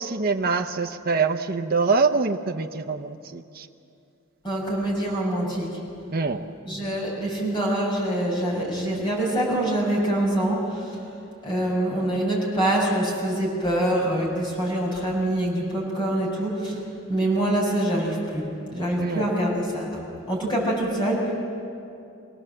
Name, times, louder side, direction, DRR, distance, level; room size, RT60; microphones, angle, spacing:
voice 1, 0.0-3.7 6.1-6.5 19.0-19.2, right 4 dB, 45° right, 4 dB, 0.7 m, -25 dB
voice 2, 4.4-5.8 6.6-11.0 11.4-16.8 17.1-20.0 20.3-21.3, right 1 dB, 20° left, -3 dB, 6.1 m, -25 dB
25.5 x 17.5 x 7.7 m, 2.6 s
head